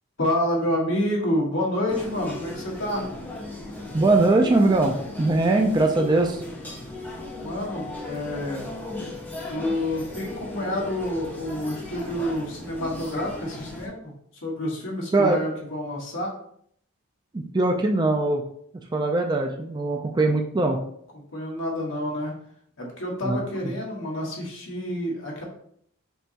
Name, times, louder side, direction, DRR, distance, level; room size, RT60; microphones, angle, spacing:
voice 1, 0.2-3.1 7.4-8.6 9.5-14.1 14.4-16.3 21.1-22.3 22.8-25.4, left 1 dB, 60° left, -2 dB, 1.3 m, -28 dB
sound 1, 1.9-13.9, left 2 dB, 10° left, 0.9 m, -37 dB
voice 2, 3.9-6.4 15.1-15.4 17.3-18.4 18.9-20.8 23.2-23.4, right 2 dB, 20° right, 3 dB, 0.3 m, -21 dB
5.4 x 3.0 x 2.8 m, 0.66 s
head